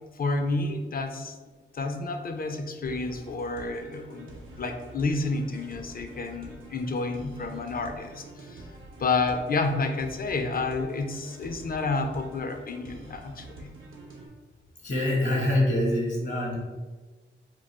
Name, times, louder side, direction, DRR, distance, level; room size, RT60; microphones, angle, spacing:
voice 1, 0.2-1.4 1.7-4.3 4.6-8.6 9.0-13.7, left 3 dB, 45° left, 6 dB, 0.4 m, -30 dB
sound 1, 2.9-14.3, right 2 dB, 85° right, 0.6 m, -47 dB
voice 2, 14.8-16.6, left 1 dB, 65° left, -3 dB, 0.8 m, -25 dB
2.3 x 2.3 x 3.9 m, 1.3 s
cardioid pair, 60°, 20 cm